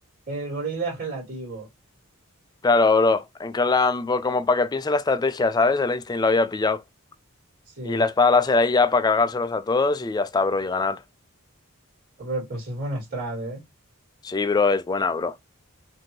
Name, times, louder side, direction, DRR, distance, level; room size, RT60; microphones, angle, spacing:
voice 1, 0.3-1.7 7.7-8.0 12.2-13.6, right 2 dB, 45° right, 2.2 m, -31 dB
voice 2, 2.6-6.8 7.8-11.0 14.2-15.4, left 3 dB, 20° left, 0.3 m, -21 dB
5.1 x 2.7 x 3.0 m
head